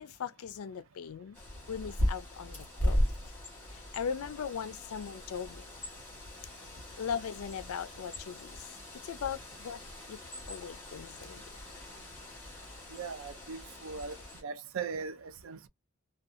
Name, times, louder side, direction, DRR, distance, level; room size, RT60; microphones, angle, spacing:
voice 1, 0.0-1.4 1.7-3.0 3.7-5.7 7.0-8.6 9.0-9.8 10.1-10.2 10.5-11.4, left 7 dB, 70° left, 0.4 m, -39 dB
Bird, 1.3-14.4, equal, 10° left, 1.2 m, -38 dB
voice 2, 12.9-15.7, right 5 dB, 60° right, 0.4 m, -40 dB
2.6 x 2.3 x 2.4 m
head